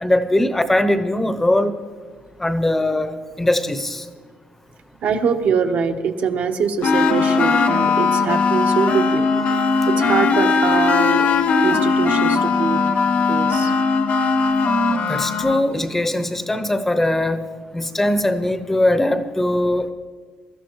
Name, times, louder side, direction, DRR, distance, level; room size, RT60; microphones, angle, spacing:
voice 1, 0.0-1.7 2.4-4.0 15.1-17.4 17.7-19.9, left 1 dB, 10° left, 10 dB, 0.7 m, -20 dB
voice 2, 5.0-9.2 9.9-11.3 11.6-12.8 13.3-13.7, right 6 dB, 65° right, 5 dB, 1.1 m, -23 dB
sound 1, 6.8-15.7, left 4 dB, 60° left, 1.0 m, -19 dB
22.5 x 13.5 x 3.1 m, 1.6 s
cardioid pair, 155°, 3 cm